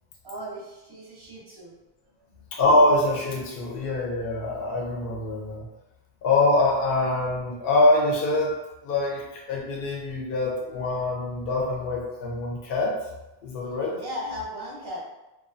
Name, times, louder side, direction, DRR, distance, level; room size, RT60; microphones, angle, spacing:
voice 1, 0.2-1.7 2.3-2.6 13.9-15.0, equal, 30° right, -4 dB, 0.5 m, -37 dB
voice 2, 2.5-5.6 6.2-8.5 8.8-12.9 13.4-13.9, left 2 dB, 65° left, -3 dB, 0.8 m, -24 dB
2.3 x 2.3 x 2.4 m, 0.99 s
omnidirectional pair, 1.0 m